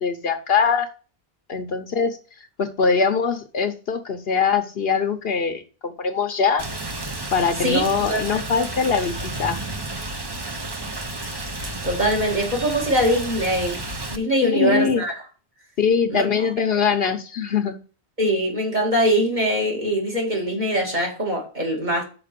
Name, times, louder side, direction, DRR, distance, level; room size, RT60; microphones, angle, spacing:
voice 1, 0.0-0.9 1.5-2.2 2.6-6.7 7.3-9.6 14.4-15.0 15.8-17.8, left 6 dB, 70° left, 1.1 m, -22 dB
Rain, 6.6-14.2, right 2 dB, 25° right, 0.8 m, -31 dB
voice 2, 7.6-8.4 11.8-13.8 14.1-15.2 16.1-16.3 18.2-22.0, equal, 45° right, 2.4 m, -22 dB
5.9 x 4.9 x 6.7 m
omnidirectional pair, 1.1 m